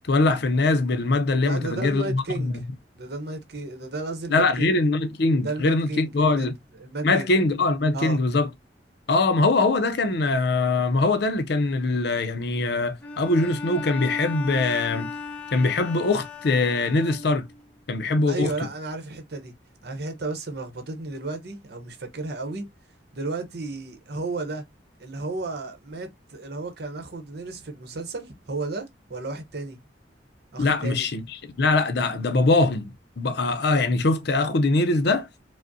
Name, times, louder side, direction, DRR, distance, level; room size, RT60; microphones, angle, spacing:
voice 1, 0.1-2.6 4.3-6.5 7.0-8.5 9.1-15.1 15.5-17.5 17.9-18.5 30.6-31.2 31.6-32.9 33.2-35.3, left 3 dB, 65° left, 0.6 m, -22 dB
voice 2, 1.4-2.7 3.0-4.7 5.4-6.5 6.8-7.3 7.9-8.2 18.3-19.6 19.8-22.7 23.1-24.6 25.0-29.8 30.5-31.1, right 3 dB, 60° right, 0.8 m, -33 dB
Bowed string instrument, 13.0-17.6, left 4 dB, 5° left, 0.7 m, -36 dB
4.9 x 2.1 x 2.6 m
head